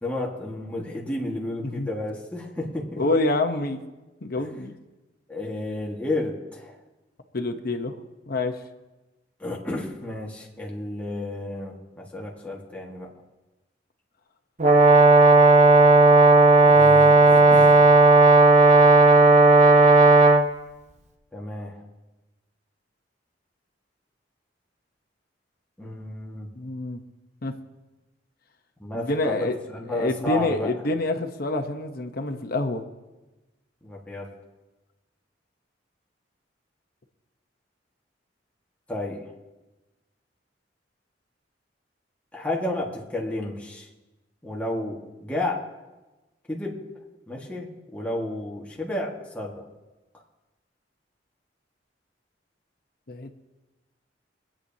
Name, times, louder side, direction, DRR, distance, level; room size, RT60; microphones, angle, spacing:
voice 1, 0.0-3.0 4.4-4.5 5.3-6.8 9.4-13.1 16.7-17.9 21.3-21.8 25.8-26.5 28.8-30.7 33.8-34.3 38.9-39.2 42.3-43.9 44.4-45.6 46.5-46.8 47.3-49.6, left 1 dB, 10° left, -3 dB, 1.6 m, -32 dB
voice 2, 3.0-3.8 4.2-4.8 7.3-7.9 8.3-8.6 26.6-27.0 27.4-27.5 28.9-29.6 29.9-32.8 53.1-53.3, left 2 dB, 55° left, 5 dB, 0.9 m, -27 dB
Brass instrument, 14.6-20.4, right 3 dB, 40° right, 0.9 m, -14 dB
25.5 x 8.7 x 2.8 m, 1.1 s
head